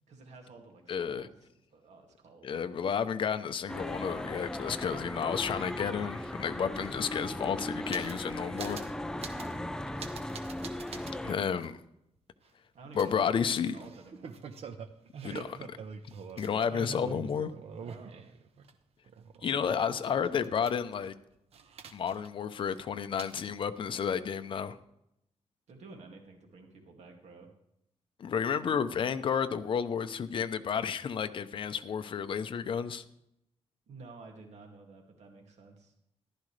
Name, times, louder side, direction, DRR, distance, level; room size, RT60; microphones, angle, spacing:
voice 1, 0.1-3.3 9.1-9.8 12.7-14.4 15.4-15.6 17.8-18.2 25.7-27.5 33.9-35.9, right 3 dB, 80° right, 2 dB, 2.3 m, -52 dB
voice 2, 0.9-1.3 2.4-8.8 11.2-11.8 12.9-13.8 15.2-15.6 16.4-17.5 19.4-21.1 21.9-24.8 28.2-33.0, left 7 dB, 50° left, 10 dB, 0.7 m, -31 dB
sound 1, 3.7-11.3, left 1 dB, 5° left, 0.4 m, -38 dB
sound 2, 7.1-8.3 8.6-8.9 9.2-9.6 10.0-11.1 11.6-11.7 13.0-18.7 19.1-21.1 21.5-22.4 22.7-22.8 23.2-23.5, right 5 dB, 65° right, 1.0 m, -45 dB
14.5 x 11.5 x 3.3 m, 0.79 s
wide cardioid pair, 165°, 11 cm